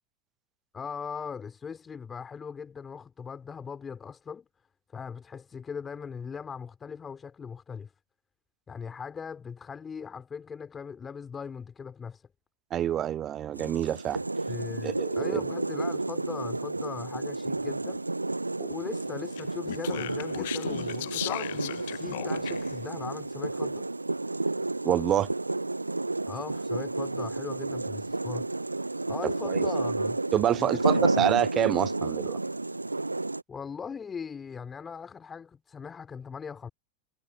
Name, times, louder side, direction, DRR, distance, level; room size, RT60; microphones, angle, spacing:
voice 1, 0.7-4.5 4.9-7.9 8.7-12.2 14.5-18.0 18.7-23.9 26.3-28.5 29.1-30.2 30.6-31.3 33.5-36.7, left 6 dB, 20° left, 3.5 m, -39 dB
voice 2, 12.7-14.2 14.8-15.4 18.6-18.7 24.8-25.3 29.4-29.6 30.3-32.4, right 11 dB, 30° right, 0.6 m, -27 dB
sound 1, 13.5-33.4, right 2 dB, 85° right, 1.2 m, -31 dB
Speech, 19.3-22.8, left 16 dB, 55° left, 1.3 m, -36 dB
figure-of-eight pair, 90°, 0 cm